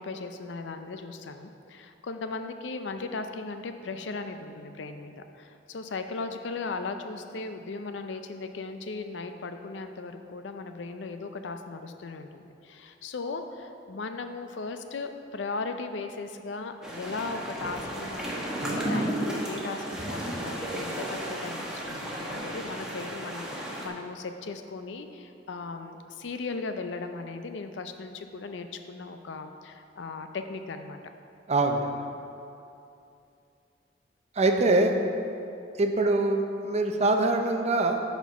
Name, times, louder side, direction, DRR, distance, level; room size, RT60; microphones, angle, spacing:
voice 1, 0.0-31.0, left 3 dB, 70° left, 7 dB, 0.5 m, -37 dB
sound 1, 16.8-23.9, right 1 dB, 5° right, 1.1 m, -33 dB
voice 2, 31.5-31.9 34.4-35.0 35.8-38.0, right 2 dB, 35° right, 4 dB, 0.6 m, -24 dB
8.2 x 4.5 x 5.6 m, 2.7 s
head